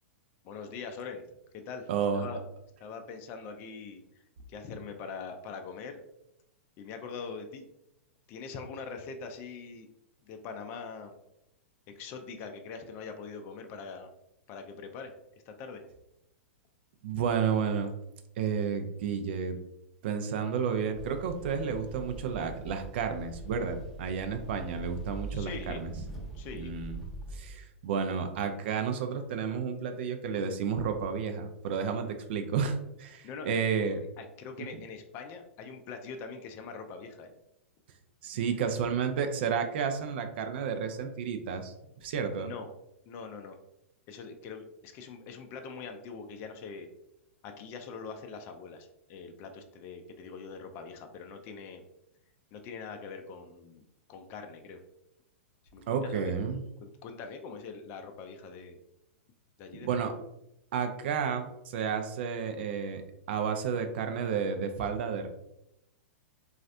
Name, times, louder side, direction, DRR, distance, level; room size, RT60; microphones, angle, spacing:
voice 1, 0.4-1.2 1.5-2.4 2.8-4.0 4.5-6.0 6.8-7.6 8.3-9.9 10.2-11.1 11.9-14.1 14.5-15.1 15.5-15.8 25.3-25.8 26.3-26.8 33.2-33.5 34.2-37.3 38.5-38.7 42.4-42.7 43.1-43.6 44.1-46.9 47.4-51.8 52.5-53.8 54.1-54.8 55.7-56.4 56.8-58.8 59.6-60.0, left 5 dB, 35° left, 5 dB, 0.4 m, -43 dB
voice 2, 1.9-2.3 17.0-17.9 18.4-19.6 20.0-25.9 26.6-27.0 27.3-34.0 38.2-41.7 42.0-42.5 55.9-56.6 59.8-60.1 60.7-63.0 63.3-65.3, right 6 dB, 55° right, 6 dB, 0.5 m, -31 dB
sound 1, 20.9-27.5, right 2 dB, ahead, 0.9 m, -43 dB
4.0 x 2.4 x 2.5 m, 0.84 s
figure-of-eight pair, 105°, 7 cm